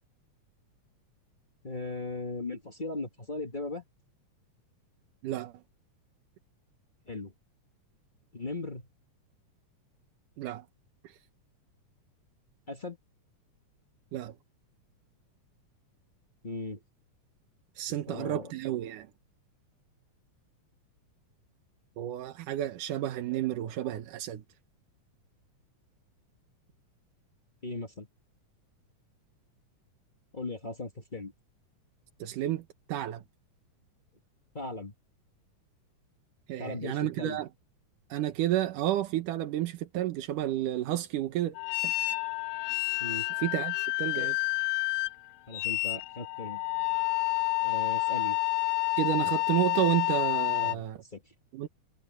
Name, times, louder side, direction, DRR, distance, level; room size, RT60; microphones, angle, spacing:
voice 1, 1.6-3.8 7.1-7.3 8.3-8.9 12.7-13.0 16.4-16.8 17.9-18.5 27.6-28.1 30.3-31.3 34.5-34.9 36.6-37.4 43.0-43.3 44.1-44.3 45.5-46.6 47.6-48.4 50.6-50.8 51.1-51.3, left 2 dB, 35° left, 0.7 m, -38 dB
voice 2, 17.8-19.1 22.0-24.4 32.2-32.6 32.9-33.2 36.5-37.5 38.1-41.6 41.8-41.9 43.4-44.3 49.0-51.0 51.5-51.7, right 13 dB, 85° right, 2.7 m, -31 dB
sound 1, 41.6-50.8, left 24 dB, 70° left, 1.9 m, -29 dB
omnidirectional pair, 3.6 m